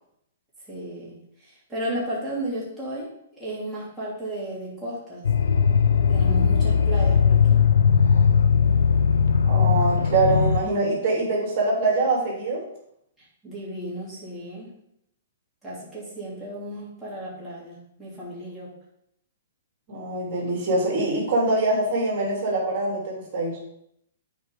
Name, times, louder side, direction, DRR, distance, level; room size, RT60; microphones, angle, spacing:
voice 1, 0.7-5.2 6.1-7.6 13.2-14.7 15.6-18.7, right 1 dB, ahead, -10 dB, 3.0 m, -34 dB
sound 1, 5.2-10.6, left 6 dB, 85° left, 0.8 m, -19 dB
voice 2, 9.4-12.6 19.9-23.6, right 2 dB, 45° right, -2 dB, 3.2 m, -24 dB
8.1 x 4.6 x 5.3 m, 0.74 s
hypercardioid pair, 145°, 0 cm